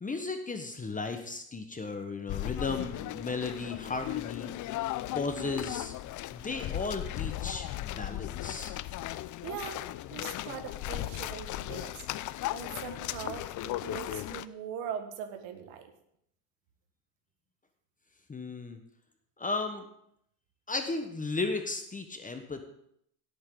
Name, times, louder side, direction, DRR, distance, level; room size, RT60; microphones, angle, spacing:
voice 1, 0.0-4.5 5.1-5.9 6.3-8.8 18.3-18.8 19.4-19.9 20.7-22.6, left 3 dB, 15° left, 6 dB, 1.3 m, -35 dB
sound 1, 2.3-14.5, left 15 dB, 40° left, 0.5 m, -36 dB
voice 2, 9.4-9.8 10.1-12.1 12.5-15.9, right 8 dB, 70° right, 7 dB, 2.0 m, -41 dB
17.0 x 8.5 x 4.0 m, 0.73 s
supercardioid pair, 100°, 49 cm